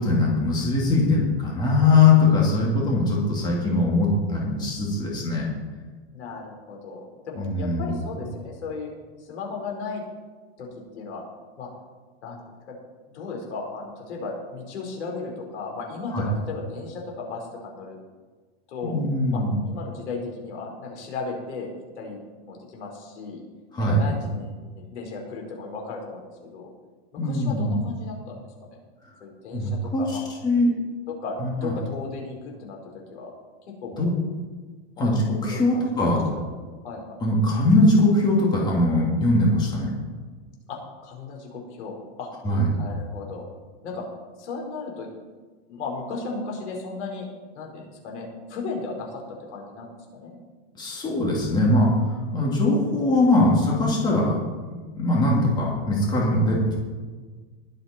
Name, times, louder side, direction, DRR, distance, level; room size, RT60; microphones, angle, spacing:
voice 1, 0.0-5.5 7.4-8.0 16.1-16.2 18.8-19.6 23.7-24.0 27.2-27.8 29.5-30.2 30.4-30.7 31.4-31.7 34.0-34.1 35.0-36.2 37.2-39.9 42.4-42.7 50.8-54.4 54.9-56.8, left 2 dB, 10° left, -3 dB, 2.4 m, -21 dB
voice 2, 6.1-8.9 9.2-10.0 10.6-10.7 10.9-11.2 11.6-11.7 12.2-12.8 13.1-18.0 18.7-19.0 19.3-21.7 22.0-23.4 23.8-26.7 27.1-28.3 28.6-28.8 29.2-30.2 31.2-33.3 33.8-34.1 35.0-35.2 35.5-35.8 36.3-36.4 36.8-37.2 40.7-42.3 42.8-43.5 43.8-44.0 44.4-45.1 45.7-47.3 47.5-50.4, left 4 dB, 85° left, 0 dB, 4.5 m, -35 dB
20.5 x 7.9 x 4.4 m, 1.4 s
supercardioid pair, 170°, 33 cm